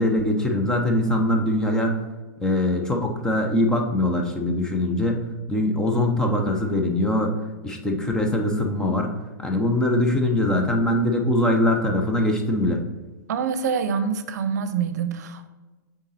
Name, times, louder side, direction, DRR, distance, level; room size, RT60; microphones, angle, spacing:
voice 1, 0.0-2.0 2.4-7.3 7.6-9.1 9.4-12.8, left 1 dB, 5° left, 2 dB, 0.7 m, -22 dB
voice 2, 13.3-15.5, right 6 dB, 70° right, 10 dB, 0.6 m, -26 dB
7.0 x 3.8 x 4.2 m, 1.2 s
hypercardioid pair, 145°, 9 cm